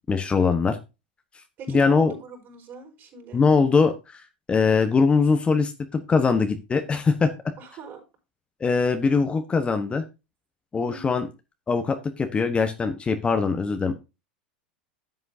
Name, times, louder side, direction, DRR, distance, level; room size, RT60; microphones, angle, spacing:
voice 1, 0.1-0.8 1.7-2.1 3.3-4.2 4.5-7.3 8.6-10.0 10.7-11.3 11.7-14.0, left 4 dB, 20° left, 7 dB, 1.3 m, -22 dB
voice 2, 1.6-3.4 7.6-8.0 10.9-11.3, right 4 dB, 45° right, 2 dB, 5.0 m, -41 dB
13.5 x 7.7 x 2.8 m, 0.27 s
hypercardioid pair, 90°, 5 cm